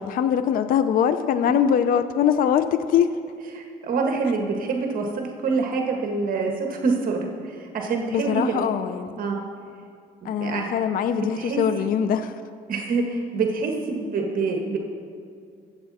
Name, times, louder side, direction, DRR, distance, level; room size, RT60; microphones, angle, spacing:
voice 1, 0.0-3.1 8.1-9.1 10.2-12.3, left 8 dB, 55° left, 11 dB, 0.6 m, -22 dB
voice 2, 3.5-8.6 9.2-9.4 10.2-10.7 11.1-11.9 12.7-14.8, right 4 dB, 55° right, 1 dB, 1.6 m, -26 dB
23.5 x 8.3 x 4.2 m, 2.3 s
cardioid pair, 110°, 17 cm